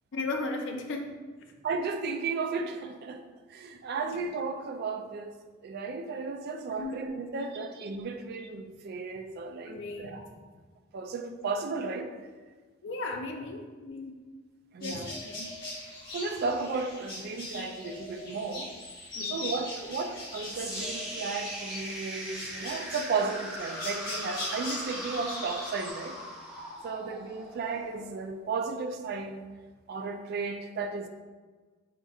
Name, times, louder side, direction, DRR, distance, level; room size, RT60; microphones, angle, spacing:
voice 1, 0.1-1.5 4.1-4.2 6.8-7.1 9.7-10.3 12.8-14.2 14.8-15.5 19.1-19.4, left 2 dB, 65° left, 3 dB, 0.5 m, -36 dB
voice 2, 1.6-5.4 5.6-10.3 10.9-12.2 14.7-15.2 16.1-18.8 19.3-26.2 26.8-29.5 29.9-31.1, right 4 dB, 55° right, 6 dB, 0.3 m, -34 dB
sound 1, 14.8-25.9, left 2 dB, 50° left, 1.3 m, -40 dB
sound 2, 20.5-28.6, equal, 5° right, 0.8 m, -40 dB
4.1 x 3.7 x 2.4 m, 1.4 s
head